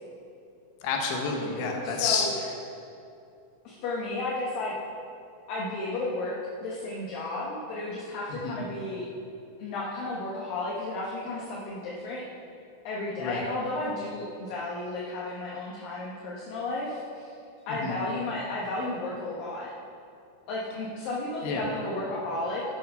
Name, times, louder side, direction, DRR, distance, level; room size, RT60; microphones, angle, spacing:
voice 1, 0.8-2.3 8.3-8.6 13.2-13.4 17.8-18.0 21.4-21.6, left 5 dB, 80° left, 1 dB, 3.3 m, -29 dB
voice 2, 1.8-2.3 3.6-4.8 5.5-9.1 9.6-12.2 12.8-17.3 17.7-19.7 20.5-22.6, left 2 dB, 65° left, -5 dB, 2.8 m, -33 dB
12.0 x 8.5 x 5.6 m, 2.6 s
omnidirectional pair, 4.7 m